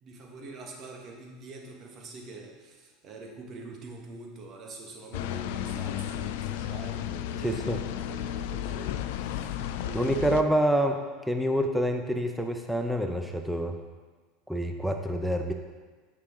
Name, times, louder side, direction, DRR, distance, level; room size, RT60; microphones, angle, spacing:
voice 1, 0.0-10.6, right 3 dB, 45° right, 1 dB, 1.7 m, -44 dB
sound 1, 5.1-10.4, left 11 dB, 75° left, 0.4 m, -33 dB
voice 2, 7.4-7.8 9.9-13.8 14.5-15.5, equal, ahead, 4 dB, 0.7 m, -27 dB
9.6 x 6.6 x 3.9 m, 1.4 s
supercardioid pair, 110°, 0 cm